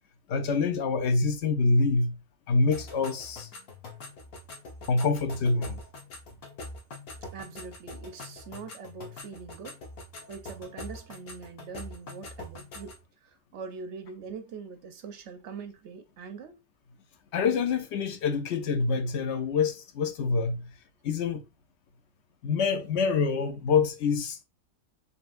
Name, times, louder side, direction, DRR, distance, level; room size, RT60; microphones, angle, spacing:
voice 1, 0.3-2.2 2.5-3.5 4.9-5.8 17.3-20.7 21.0-21.4 22.4-24.4, left 4 dB, 60° left, 0.8 m, -26 dB
sound 1, 2.7-13.0, left 2 dB, 85° left, 1.5 m, -44 dB
voice 2, 7.3-9.8 10.3-13.0 13.2-16.6, right 5 dB, 65° right, 0.8 m, -43 dB
4.3 x 3.4 x 2.4 m
omnidirectional pair, 1.5 m